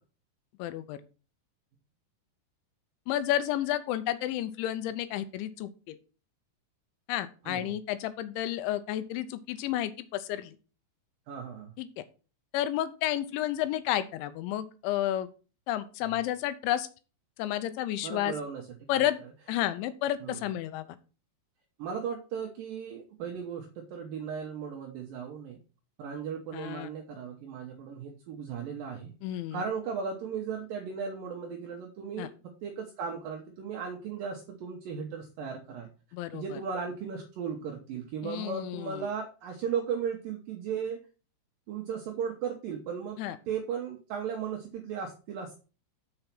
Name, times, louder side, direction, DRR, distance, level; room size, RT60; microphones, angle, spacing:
voice 1, 0.6-1.0 3.1-6.0 7.1-10.6 11.8-11.9 12.5-15.3 15.7-16.9 17.4-18.3 18.9-19.2 19.5-20.9 26.5-26.9 29.2-29.6 32.2-32.3 36.1-36.4 38.2-39.1 43.2-43.4, left 12 dB, 85° left, 13 dB, 3.0 m, -31 dB
voice 2, 7.4-7.8 11.3-11.7 18.0-18.7 18.9-19.0 20.2-20.5 21.8-25.6 26.0-32.3 32.6-35.9 36.3-41.0 41.7-43.2 43.5-45.5, right 6 dB, 75° right, 1 dB, 2.1 m, -36 dB
6.9 x 5.6 x 6.0 m, 0.35 s
omnidirectional pair, 5.3 m